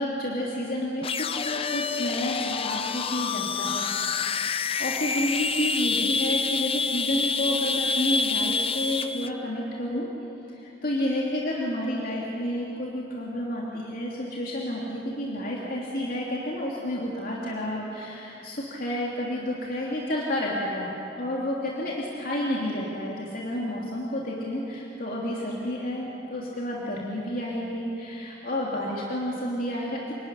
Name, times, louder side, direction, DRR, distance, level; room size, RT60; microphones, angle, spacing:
voice 1, 0.0-3.9 4.1-10.1 10.5-30.1, left 1 dB, 50° left, -4 dB, 3.1 m, -30 dB
sound 1, 1.0-9.3, left 4 dB, 30° left, 0.7 m, -27 dB
29.0 x 18.5 x 10.0 m, 2.9 s
head